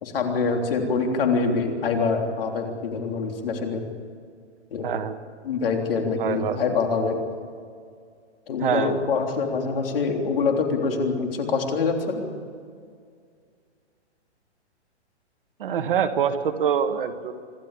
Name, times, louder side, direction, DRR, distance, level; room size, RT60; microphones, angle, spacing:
voice 1, 0.0-3.8 4.7-4.9 5.4-7.2 8.5-12.3, left 4 dB, 55° left, 3 dB, 3.5 m, -25 dB
voice 2, 4.8-5.2 6.2-6.6 8.6-8.9 15.6-17.3, right 8 dB, 50° right, 7 dB, 1.6 m, -25 dB
26.5 x 12.5 x 8.4 m, 2.2 s
hypercardioid pair, 165°, 34 cm